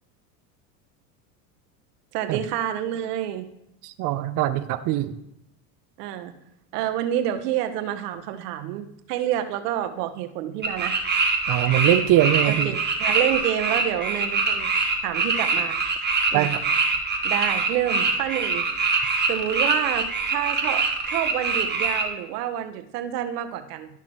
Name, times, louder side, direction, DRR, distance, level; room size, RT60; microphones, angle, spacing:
voice 1, 2.1-3.5 6.0-6.3 6.7-11.0 12.5-14.7 15.0-15.8 16.3-16.5 17.2-18.6 19.3-23.9, right 11 dB, 75° right, 8 dB, 1.0 m, -28 dB
voice 2, 3.8-5.1 11.5-12.7 16.3-16.6, right 13 dB, 45° right, 9 dB, 0.5 m, -22 dB
sound 1, 10.6-22.0, right 4 dB, 20° right, 1.6 m, -24 dB
12.5 x 5.9 x 3.1 m, 0.79 s
supercardioid pair, 100°, 47 cm